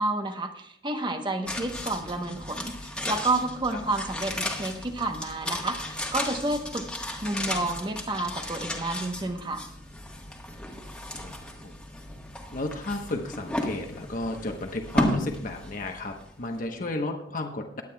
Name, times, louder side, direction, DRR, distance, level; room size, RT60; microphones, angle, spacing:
voice 1, 0.0-2.8 3.0-6.9 7.2-9.6, right 2 dB, 25° right, 6 dB, 1.0 m, -30 dB
sound 1, 1.4-16.6 16.9-17.0, left 1 dB, 5° left, 1.4 m, -34 dB
voice 2, 12.5-17.8, left 2 dB, 50° left, 3 dB, 1.1 m, -33 dB
22.0 x 9.2 x 2.3 m, 0.74 s
head